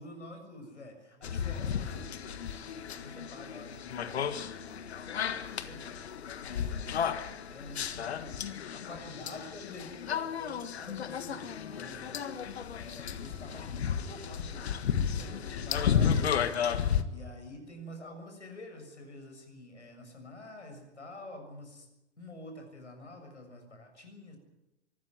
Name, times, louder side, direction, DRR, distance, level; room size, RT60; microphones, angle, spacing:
voice 1, 0.0-4.4 4.8-6.1 6.4-7.2 7.5-16.4 17.1-21.9 22.2-24.4, left 1 dB, 80° left, 4 dB, 6.9 m, -48 dB
sound 1, 1.2-17.0, left 8 dB, 65° left, 1.6 m, -33 dB
24.0 x 13.5 x 9.6 m, 0.97 s
figure-of-eight pair, 100°, 34 cm